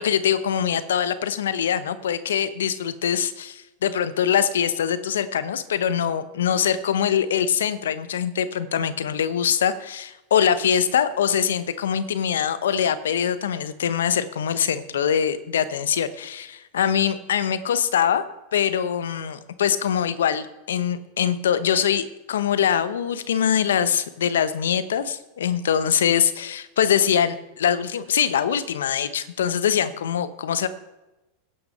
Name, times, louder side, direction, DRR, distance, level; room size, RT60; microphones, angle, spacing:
voice 1, 0.0-18.2 18.5-30.7, left 8 dB, 80° left, 12 dB, 0.9 m, -23 dB
16.5 x 5.8 x 5.6 m, 1.0 s
hypercardioid pair, 100°, 0 cm